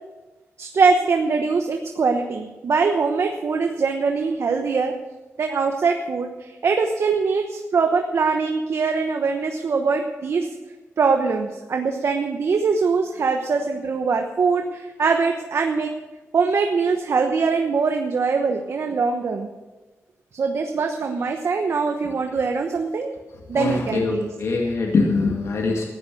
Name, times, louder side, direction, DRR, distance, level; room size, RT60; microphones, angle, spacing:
voice 1, 0.6-4.9 5.4-10.5 11.0-15.9 16.3-19.5 20.3-23.2 23.5-24.3, right 4 dB, 65° right, 4 dB, 1.1 m, -22 dB
voice 2, 23.5-25.8, left 3 dB, 75° left, 0 dB, 2.0 m, -23 dB
14.5 x 9.8 x 6.5 m, 1.2 s
wide cardioid pair, 90°, 5 cm